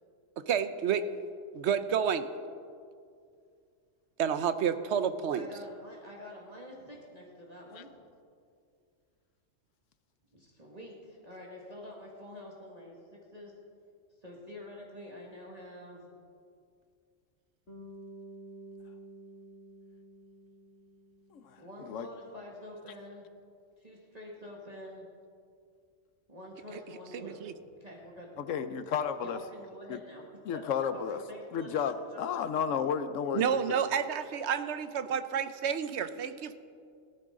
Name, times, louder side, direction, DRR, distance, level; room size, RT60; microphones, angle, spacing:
voice 1, 0.5-1.0 1.5-2.3 4.2-5.5 27.1-27.5 33.3-36.5, right 8 dB, 65° right, 11 dB, 1.0 m, -30 dB
voice 2, 5.3-8.0 10.3-13.0 13.3-13.5 14.2-16.1 21.6-23.3 23.8-25.1 26.3-28.4 29.2-30.2 30.5-30.6 30.9-31.8 32.1-32.3, left 1 dB, 30° right, -3 dB, 1.9 m, -47 dB
Bass guitar, 17.7-21.9, right 1 dB, 55° left, 2.5 m, -50 dB
voice 3, 28.4-29.4 29.9-30.0 30.4-31.2 31.5-33.8, left 7 dB, 80° left, 11 dB, 1.1 m, -32 dB
18.0 x 14.0 x 3.7 m, 2.3 s
omnidirectional pair, 1.3 m